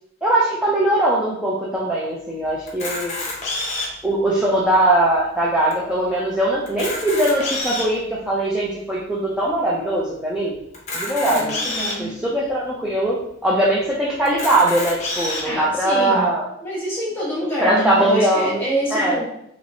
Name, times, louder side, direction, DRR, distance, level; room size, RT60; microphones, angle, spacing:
voice 1, 0.2-3.1 4.0-10.5 10.9-11.5 12.0-13.2 13.4-16.4 17.6-18.6 18.9-19.2, right 1 dB, 5° right, -6 dB, 0.4 m, -20 dB
Camera, 2.7-4.1 4.7-4.8 5.0-5.2 5.7-5.8 6.6-8.0 8.6-8.7 10.7-12.0 12.7-12.8 13.1-13.2 14.2-15.4, left 2 dB, 35° left, 0.7 m, -27 dB
voice 2, 11.2-12.2 15.4-16.3 16.6-19.2, right 1 dB, 10° left, -8 dB, 1.1 m, -26 dB
3.1 x 2.9 x 2.6 m, 0.76 s
head